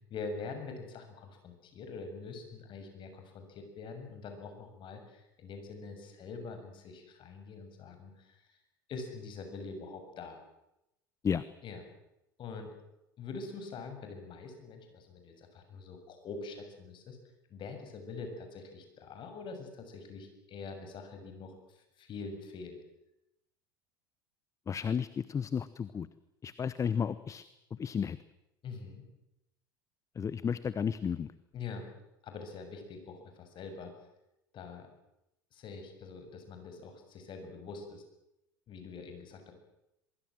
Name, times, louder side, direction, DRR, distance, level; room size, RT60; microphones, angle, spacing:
voice 1, 0.1-8.6 8.9-10.4 11.6-11.8 12.4-12.8 13.2-17.2 17.5-22.8 28.6-29.0 31.5-31.9 32.2-33.9 34.5-34.9 35.5-38.0 38.7-39.5, left 4 dB, 45° left, 6 dB, 7.0 m, -44 dB
voice 2, 24.7-26.1 26.4-27.4 27.8-28.2 30.2-31.3, left 7 dB, 25° left, 16 dB, 1.0 m, -32 dB
23.0 x 22.5 x 7.7 m, 0.87 s
hypercardioid pair, 75°, 12 cm